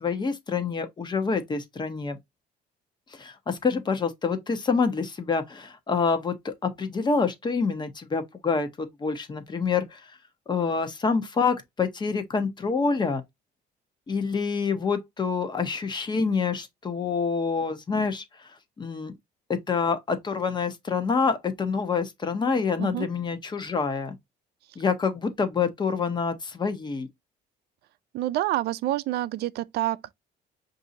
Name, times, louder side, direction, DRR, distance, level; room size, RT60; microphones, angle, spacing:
voice 1, 0.0-2.2 3.1-10.0 10.5-13.2 14.1-18.2 18.8-19.2 19.5-24.1 24.8-27.1, left 5 dB, 25° left, 0.8 m, -27 dB
voice 2, 28.1-30.1, right 14 dB, 70° right, 0.4 m, -28 dB
6.0 x 2.7 x 2.6 m
cardioid pair, 135°, 18 cm